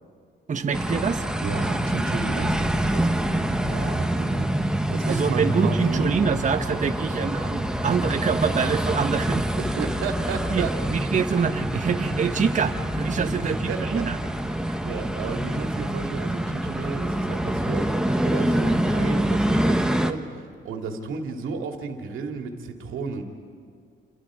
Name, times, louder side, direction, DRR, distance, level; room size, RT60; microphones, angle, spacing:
voice 1, 0.5-1.3 5.1-9.5 10.5-14.2 14.7-14.8, right 6 dB, 40° right, 6 dB, 1.2 m, -25 dB
sound 1, 0.7-20.1, right 1 dB, 5° right, 1.2 m, -26 dB
voice 2, 1.4-6.1 9.6-10.7 13.1-14.1 14.5-18.0 18.2-23.2, right 4 dB, 80° right, 3 dB, 2.5 m, -33 dB
28.5 x 27.0 x 5.0 m, 2.1 s
cardioid pair, 90°, 20 cm